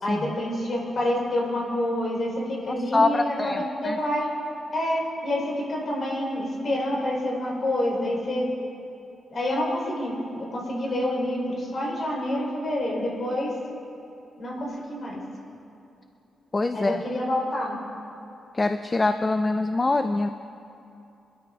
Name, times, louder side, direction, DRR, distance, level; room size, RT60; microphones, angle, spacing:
voice 1, 0.0-4.3 4.7-8.5 9.3-13.5 14.4-15.2 16.7-17.8, left 1 dB, 40° left, -1 dB, 3.1 m, -27 dB
voice 2, 2.7-4.0 16.5-17.0 18.5-20.3, left 2 dB, 20° left, 8 dB, 0.3 m, -24 dB
25.0 x 12.5 x 3.4 m, 2.8 s
wide cardioid pair, 165°, 0 cm